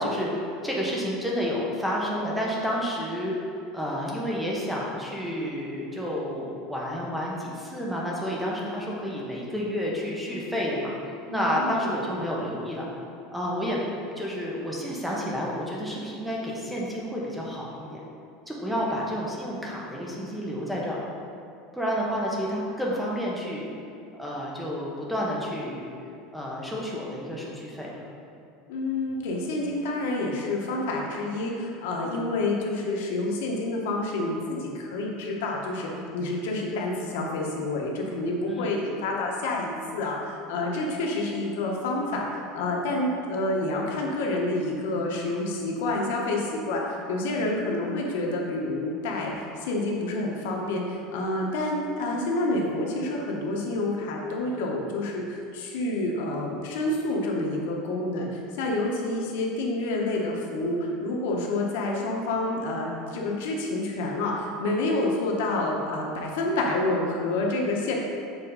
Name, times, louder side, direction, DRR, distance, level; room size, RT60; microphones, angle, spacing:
voice 1, 0.0-3.3 3.7-11.0 11.3-12.9 13.3-13.8 14.2-18.0 18.5-21.0 21.7-23.7 24.1-25.9 26.3-28.0 38.4-38.7, equal, 5° right, -4 dB, 0.9 m, -30 dB
voice 2, 11.3-11.9 28.7-67.9, left 2 dB, 80° left, -1 dB, 1.1 m, -28 dB
6.7 x 3.6 x 5.3 m, 2.5 s
supercardioid pair, 160°, 0 cm